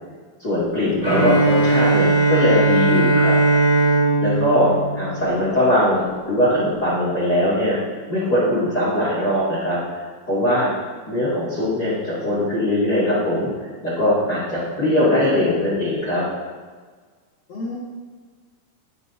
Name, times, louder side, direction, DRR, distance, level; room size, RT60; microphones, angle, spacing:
voice 1, 0.4-3.3 4.2-4.7 4.9-7.8 8.1-10.7 11.1-16.2, left 1 dB, 35° left, -9 dB, 1.7 m, -21 dB
Bowed string instrument, 1.0-5.9, right 2 dB, 15° right, 2.5 m, -18 dB
voice 2, 4.3-4.7 17.5-17.8, left 1 dB, 85° left, -6 dB, 1.4 m, -32 dB
17.5 x 6.0 x 2.7 m, 1.5 s
omnidirectional pair, 5.4 m